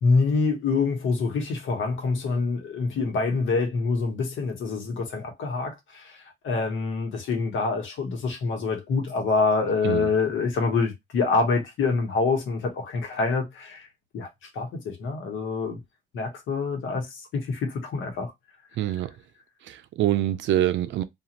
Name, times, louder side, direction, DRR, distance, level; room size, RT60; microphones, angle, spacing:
voice 1, 0.0-13.9 14.1-15.8 16.1-18.3, left 4 dB, 80° left, 1.1 m, -26 dB
voice 2, 18.8-19.1 19.7-21.0, right 13 dB, 70° right, 0.4 m, -25 dB
2.5 x 2.5 x 2.9 m
cardioid pair, 90°, 20 cm